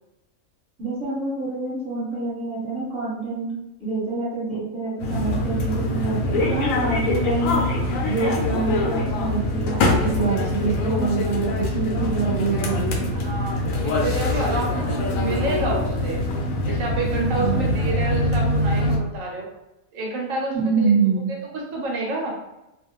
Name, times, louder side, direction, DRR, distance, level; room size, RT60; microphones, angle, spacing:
voice 1, 0.8-3.5 3.8-7.6 8.0-13.1 17.3-17.8 20.5-21.2, right 4 dB, 5° right, -7 dB, 1.1 m, -26 dB
sound 1, 5.0-19.0, left 2 dB, 80° left, 1.0 m, -24 dB
voice 2, 13.1-16.2 16.7-19.5 19.9-20.9 21.3-22.4, right 2 dB, 80° right, -1 dB, 1.1 m, -29 dB
2.4 x 2.4 x 3.1 m, 0.95 s
omnidirectional pair, 1.4 m